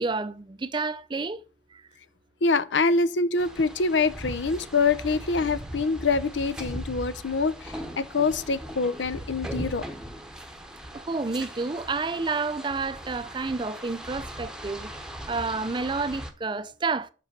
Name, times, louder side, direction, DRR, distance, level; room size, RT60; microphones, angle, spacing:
voice 1, 0.0-1.4 1.7-1.8 10.9-14.9 15.3-17.1, right 3 dB, 25° right, 0.4 m, -30 dB
voice 2, 2.4-9.8, left 4 dB, 85° left, 0.7 m, -25 dB
sound 1, 3.4-16.3, right 1 dB, 5° right, 0.9 m, -39 dB
6.1 x 5.4 x 6.6 m
head